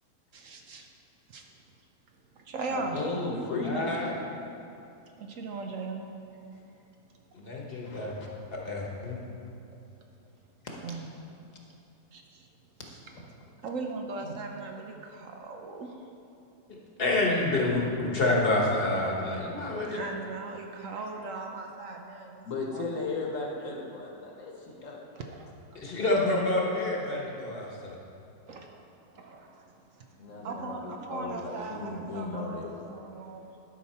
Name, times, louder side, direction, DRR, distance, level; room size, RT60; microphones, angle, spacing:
voice 1, 0.3-0.9 1.3-1.5 2.3-3.1 5.2-6.1 6.5-6.6 10.8-11.2 12.1-12.5 12.9-13.0 13.6-16.0 19.8-23.0 25.1-25.5 28.5-33.6, right 3 dB, 65° right, 2 dB, 1.0 m, -39 dB
voice 2, 2.7-3.9 7.8-8.3 14.2-14.4 22.4-25.0 30.2-32.7, left 3 dB, 60° left, -1 dB, 1.4 m, -35 dB
voice 3, 3.6-4.1 7.3-8.2 8.6-9.2 16.7-20.0 25.7-27.9, left 2 dB, 40° left, -2 dB, 1.2 m, -28 dB
11.5 x 5.6 x 4.3 m, 2.7 s
omnidirectional pair, 1.6 m